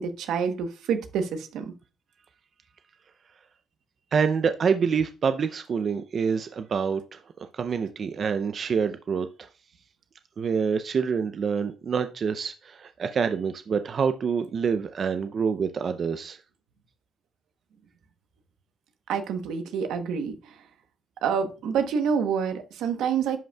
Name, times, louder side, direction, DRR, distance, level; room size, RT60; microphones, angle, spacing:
voice 1, 0.0-1.7 19.1-20.5 21.2-23.4, right 6 dB, 85° right, 0.9 m, -27 dB
voice 2, 4.1-9.5 10.4-16.4, right 6 dB, 50° right, 0.4 m, -27 dB
10.5 x 5.1 x 2.3 m
cardioid pair, 90°, 0 cm